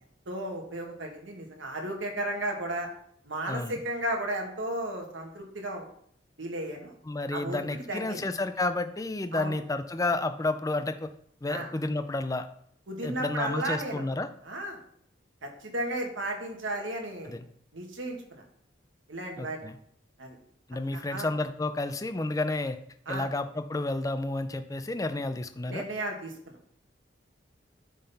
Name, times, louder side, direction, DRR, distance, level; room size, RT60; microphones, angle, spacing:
voice 1, 0.2-2.9 3.2-5.9 6.4-6.9 7.3-8.2 9.3-9.6 11.5-11.7 12.9-14.0 14.4-14.8 15.4-17.4 17.7-18.4 19.1-19.6 20.2-20.4 20.9-21.3 23.1-23.3 25.7-26.6, right 1 dB, 80° right, 2 dB, 1.6 m, -34 dB
voice 2, 3.5-3.8 7.1-11.1 11.4-12.5 13.0-14.3 17.3-17.4 19.4-19.8 20.7-22.8 23.1-25.8, left 2 dB, 20° left, 9 dB, 0.4 m, -31 dB
10.0 x 3.9 x 4.1 m, 0.66 s
head